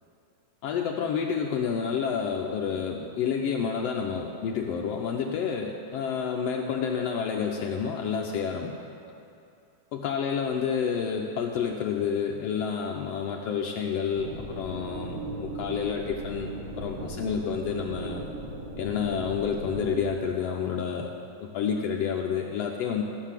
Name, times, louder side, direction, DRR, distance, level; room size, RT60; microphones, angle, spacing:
voice 1, 0.6-8.7 9.9-16.5 16.8-18.3 18.8-21.1 21.4-23.0, left 7 dB, 85° left, 1 dB, 1.4 m, -29 dB
sound 1, 14.1-20.0, right 1 dB, 45° right, 2.3 m, -38 dB
15.0 x 6.6 x 7.4 m, 2.6 s
omnidirectional pair, 3.6 m